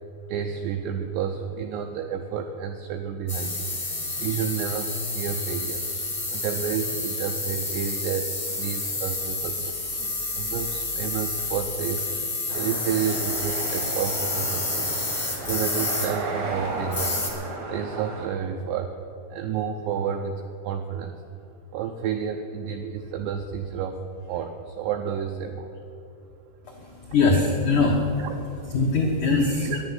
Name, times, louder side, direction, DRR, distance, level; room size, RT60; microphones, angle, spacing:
voice 1, 0.3-5.9 6.3-8.3 8.6-9.8 10.3-12.1 12.5-15.0 15.4-17.2 17.7-18.9 19.3-21.2 21.7-24.0 24.2-25.7 29.6-29.8, right 7 dB, 85° right, 5 dB, 2.4 m, -30 dB
sound 1, 3.3-17.3, left 2 dB, 30° left, 0.5 m, -30 dB
sound 2, 12.5-18.3, right 3 dB, 70° right, 1.4 m, -34 dB
voice 2, 26.6-29.7, left 3 dB, 80° left, -2 dB, 1.7 m, -23 dB
10.5 x 10.5 x 9.4 m, 2.6 s
omnidirectional pair, 5.7 m